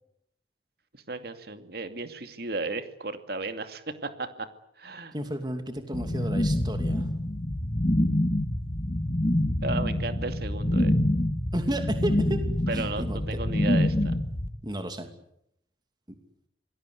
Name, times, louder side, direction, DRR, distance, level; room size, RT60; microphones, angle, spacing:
voice 1, 0.9-4.5 4.8-5.1 9.6-10.9 12.7-14.1, right 3 dB, 60° right, 9 dB, 2.5 m, -34 dB
voice 2, 5.1-7.1 11.5-12.4 12.7-13.2 14.6-15.1, right 1 dB, 25° right, 7 dB, 2.7 m, -32 dB
sound 1, 5.9-14.5, left 1 dB, 35° left, 1.8 m, -26 dB
27.0 x 20.5 x 8.3 m, 0.76 s
head